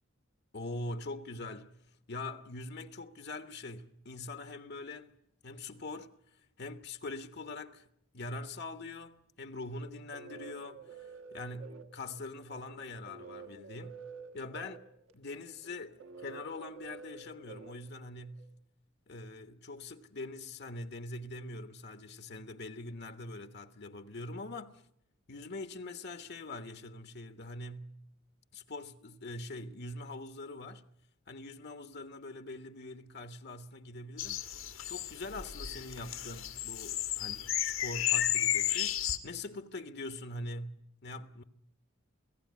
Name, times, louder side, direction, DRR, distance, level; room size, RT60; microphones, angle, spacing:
voice 1, 0.5-1.8 2.1-5.1 5.4-6.1 6.6-7.9 8.1-14.0 14.3-14.8 15.1-18.5 19.1-24.8 25.3-28.0 28.5-30.9 31.3-34.4 34.9-41.4, left 2 dB, 50° left, 1.2 m, -43 dB
sound 1, 9.8-18.5, right 5 dB, 70° right, 1.5 m, -50 dB
sound 2, 34.2-39.2, left 12 dB, 70° left, 1.6 m, -33 dB
28.0 x 17.5 x 9.5 m
head